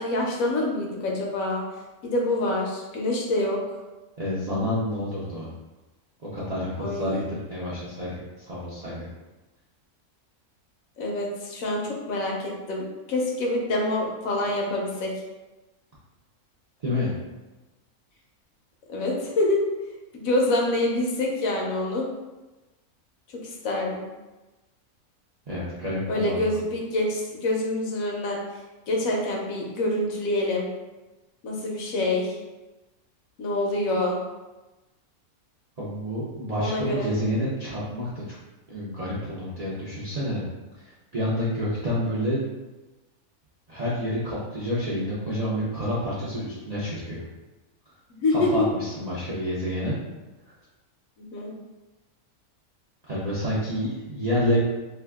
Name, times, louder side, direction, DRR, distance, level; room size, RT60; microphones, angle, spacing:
voice 1, 0.0-1.6 2.0-3.6 6.8-7.3 11.0-15.1 18.9-19.6 20.1-22.1 23.6-24.0 26.1-28.4 28.9-30.7 31.4-32.4 33.4-34.2 36.6-37.1 48.1-48.5 51.2-51.5, left 2 dB, 75° left, -1 dB, 1.1 m, -26 dB
voice 2, 4.2-5.5 6.3-9.0 16.8-17.1 25.5-26.5 35.8-38.4 38.7-40.4 40.8-42.4 43.7-47.2 48.3-49.9 53.0-54.6, left 1 dB, 50° right, -8 dB, 0.5 m, -29 dB
2.8 x 2.3 x 3.4 m, 1.1 s
omnidirectional pair, 1.5 m